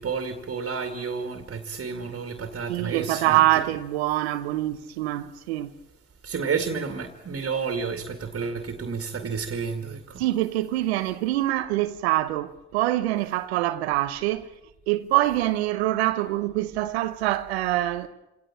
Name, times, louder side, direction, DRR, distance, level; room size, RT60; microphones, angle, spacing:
voice 1, 0.0-3.4 6.2-10.2, right 5 dB, 45° right, 2.2 m, -31 dB
voice 2, 2.7-5.7 10.2-14.5 14.9-18.1, right 15 dB, 85° right, 0.9 m, -25 dB
26.5 x 17.5 x 8.8 m
hypercardioid pair, 45°, 31 cm